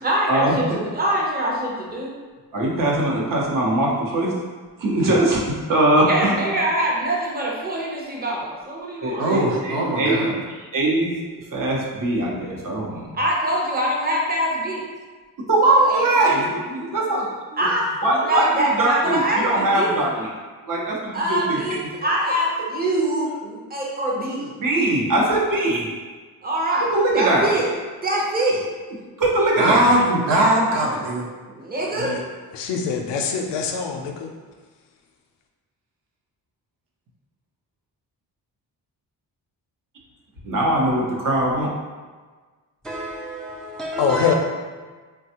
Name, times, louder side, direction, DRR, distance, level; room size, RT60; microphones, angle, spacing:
voice 1, 0.0-2.1 6.1-9.3 13.1-14.8 15.6-16.4 17.6-17.8 18.2-19.9 21.1-24.5 26.4-26.9 27.1-27.7 28.0-28.6 31.6-32.1, right 1 dB, 25° right, 0.7 m, -24 dB
voice 2, 2.5-4.3 4.8-5.4 5.7-6.5 9.0-11.1 11.5-13.1 15.5-17.7 18.0-20.3 20.6-21.6 24.6-25.9 26.9-27.5 29.2-29.9 40.4-41.7, right 1 dB, 50° right, 0.8 m, -21 dB
voice 3, 9.2-10.3 29.6-31.2, right 1 dB, 85° right, 0.8 m, -20 dB
voice 4, 31.8-32.2 32.5-34.3 44.0-44.4, left 6 dB, 90° left, 0.5 m, -24 dB
voice 5, 42.8-44.3, right 1 dB, ahead, 0.3 m, -31 dB
3.3 x 2.2 x 2.8 m
cardioid pair, 85°, 41 cm